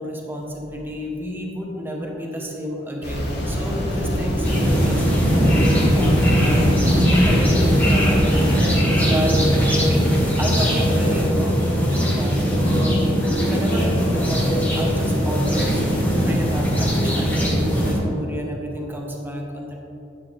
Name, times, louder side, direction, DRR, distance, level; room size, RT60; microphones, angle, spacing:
voice 1, 0.0-8.8 9.0-9.4 9.9-10.1 10.4-13.0 13.4-19.8, equal, 10° right, -1 dB, 1.3 m, -30 dB
sound 1, 3.0-8.6, equal, 60° left, 2.2 m, -24 dB
sound 2, 4.4-17.9, equal, 10° left, 2.2 m, -19 dB
10.5 x 8.7 x 3.5 m, 3.0 s
head